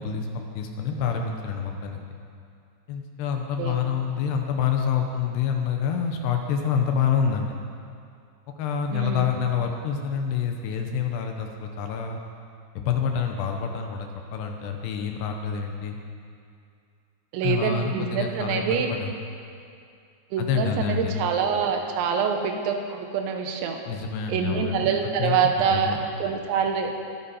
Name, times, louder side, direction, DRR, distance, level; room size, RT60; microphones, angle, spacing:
voice 1, 0.0-2.0 2.9-7.6 8.6-12.2 12.8-16.0 17.4-19.1 20.4-21.2 23.9-24.9 25.2-26.0, left 7 dB, 75° left, 3 dB, 2.8 m, -27 dB
voice 2, 8.9-9.2 17.3-18.9 20.3-23.8 24.3-26.9, right 6 dB, 80° right, 4 dB, 3.4 m, -25 dB
22.5 x 9.6 x 4.3 m, 2.4 s
omnidirectional pair, 5.2 m